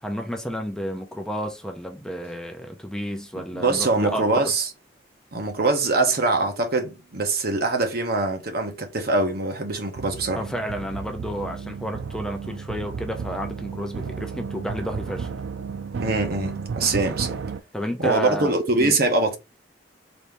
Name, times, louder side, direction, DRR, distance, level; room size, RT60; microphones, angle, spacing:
voice 1, 0.0-4.5 10.3-15.3 17.7-19.0, equal, 5° left, 0.7 m, -31 dB
voice 2, 3.5-4.7 5.3-10.4 16.0-17.4 18.0-19.4, right 3 dB, 60° right, 1.1 m, -23 dB
sound 1, 9.9-17.6, right 5 dB, 75° right, 0.4 m, -33 dB
4.1 x 2.8 x 3.4 m
head